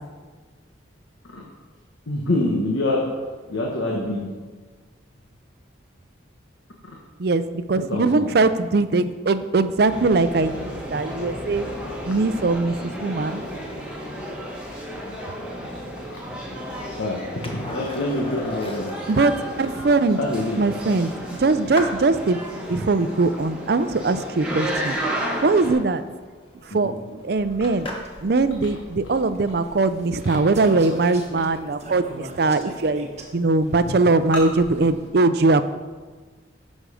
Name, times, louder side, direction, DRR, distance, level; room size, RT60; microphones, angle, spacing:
voice 1, 2.1-3.0 3.5-4.2 7.7-8.3 16.1-16.2 17.0-18.9 20.2-20.6 26.8-26.9 33.9-34.0, left 2 dB, 90° left, -1 dB, 1.3 m, -25 dB
voice 2, 7.2-11.7 12.0-13.4 19.1-20.2 20.6-26.0 26.6-27.9 28.2-33.1 33.3-35.7, right 3 dB, 55° right, 12 dB, 0.5 m, -21 dB
sound 1, 9.9-25.7, equal, 5° right, 1.6 m, -33 dB
Skateboard, 17.4-28.3 30.9-31.0, left 1 dB, 30° left, 1.1 m, -39 dB
sound 2, 27.3-35.1, right 1 dB, 35° right, 1.2 m, -41 dB
10.0 x 6.4 x 5.0 m, 1.4 s
head